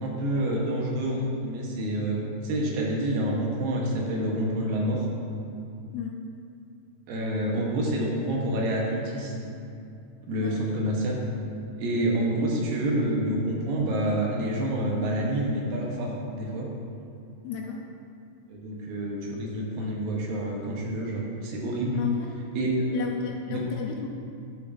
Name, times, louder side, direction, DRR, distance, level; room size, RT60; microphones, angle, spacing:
voice 1, 0.0-5.1 7.1-9.3 10.3-11.2 11.8-16.7 18.5-22.0 22.6-23.1 23.5-23.6, right 1 dB, 75° right, -2 dB, 2.7 m, -28 dB
voice 2, 17.4-17.8 21.9-22.3 22.9-24.1, left 8 dB, 80° left, 1 dB, 2.4 m, -33 dB
12.0 x 6.7 x 2.6 m, 2.5 s
omnidirectional pair, 4.3 m